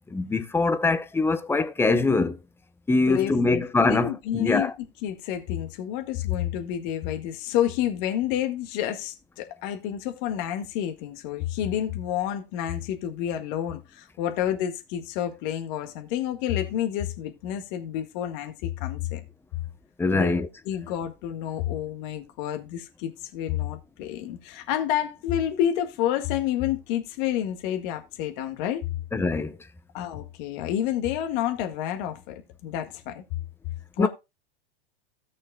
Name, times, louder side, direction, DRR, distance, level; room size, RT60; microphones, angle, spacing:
voice 1, 0.1-2.4 2.9-4.7 20.0-20.5 29.1-29.6 34.0-34.1, left 3 dB, 5° left, 0.7 m, -23 dB
voice 2, 3.1-4.7 5.0-19.2 20.1-28.8 29.9-33.2 34.0-34.1, left 11 dB, 50° left, 1.8 m, -29 dB
17.0 x 6.4 x 2.2 m
hypercardioid pair, 115°, 32 cm